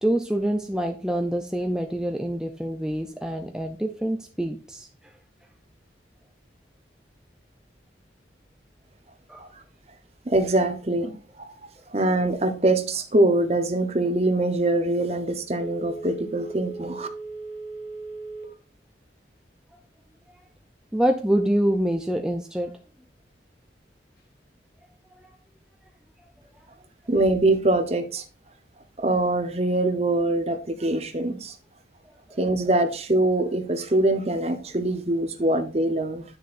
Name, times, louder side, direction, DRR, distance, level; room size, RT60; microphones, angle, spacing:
voice 1, 0.0-4.9 9.3-9.4 20.9-22.7, right 1 dB, 5° right, 4 dB, 0.5 m, -26 dB
voice 2, 10.2-17.1 27.1-28.2 29.0-31.6 32.4-36.2, right 2 dB, 35° right, 8 dB, 0.9 m, -23 dB
Telephone, 15.5-18.6 19.0-19.1, right 3 dB, 55° left, 1.7 m, -37 dB
9.6 x 6.5 x 2.5 m, 0.35 s
head